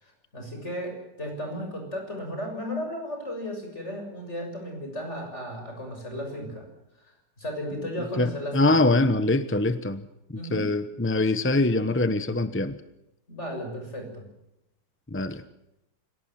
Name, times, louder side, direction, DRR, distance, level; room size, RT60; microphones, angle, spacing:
voice 1, 0.0-6.7 7.4-8.8 10.4-10.7 13.3-14.2, equal, 35° left, 7.1 m, -35 dB
voice 2, 8.2-10.1 10.5-12.8 15.1-15.4, left 2 dB, 15° left, 0.5 m, -23 dB
27.5 x 18.0 x 7.5 m
omnidirectional pair, 1.9 m